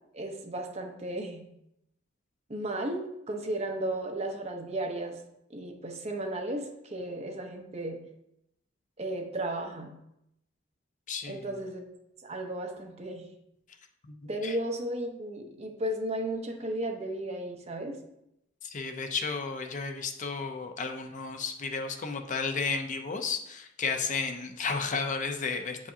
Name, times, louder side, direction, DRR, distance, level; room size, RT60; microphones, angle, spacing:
voice 1, 0.1-1.5 2.5-5.2 5.5-8.0 9.0-9.9 11.3-11.9 12.2-13.2 14.3-18.0, right 1 dB, 35° right, 2 dB, 0.9 m, -34 dB
voice 2, 11.1-11.5 14.2-14.6 18.6-25.9, left 4 dB, 40° left, 5 dB, 0.5 m, -33 dB
8.4 x 4.8 x 2.7 m, 0.82 s
head